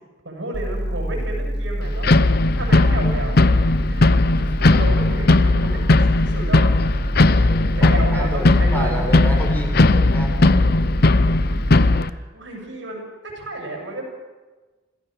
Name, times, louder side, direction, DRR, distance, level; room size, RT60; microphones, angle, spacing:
voice 1, 0.2-2.1 2.6-6.7 7.2-9.3 11.9-14.0, right 2 dB, 75° right, 1 dB, 7.0 m, -33 dB
sound 1, 0.5-12.0, equal, 5° right, 2.0 m, -26 dB
sound 2, 2.0-12.1, left 2 dB, 55° left, 0.8 m, -17 dB
voice 2, 7.3-10.3, equal, 10° left, 1 dB, 4.3 m, -30 dB
26.5 x 16.0 x 6.6 m, 1.3 s
head